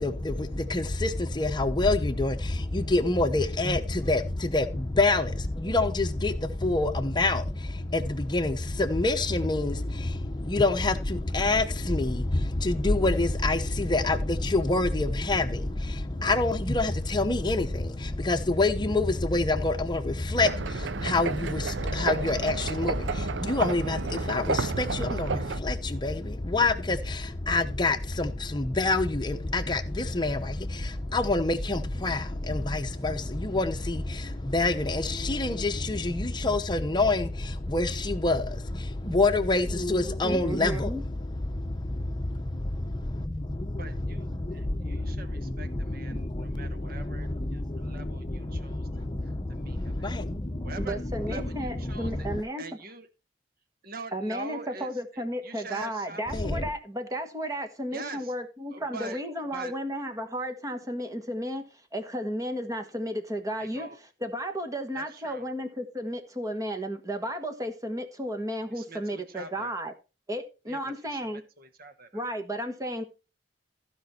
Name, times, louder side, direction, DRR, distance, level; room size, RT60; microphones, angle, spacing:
voice 1, 0.0-52.4 56.3-56.7, left 2 dB, 25° left, 0.9 m, -27 dB
sound 1, 20.4-25.6, right 5 dB, 80° right, 0.6 m, -32 dB
voice 2, 40.2-41.0 46.1-46.3 50.8-52.6 54.1-63.9 64.2-69.9 70.3-71.4 72.1-73.0, equal, 20° right, 1.5 m, -33 dB
voice 3, 43.8-48.9 49.2-50.1 50.6-53.1 53.8-56.4 57.9-58.3 58.7-59.2 59.5-59.7 63.6-64.0 64.9-65.4 68.7-69.7 70.6-70.8 71.1-72.2, right 3 dB, 55° right, 1.2 m, -44 dB
15.0 x 5.2 x 4.4 m
head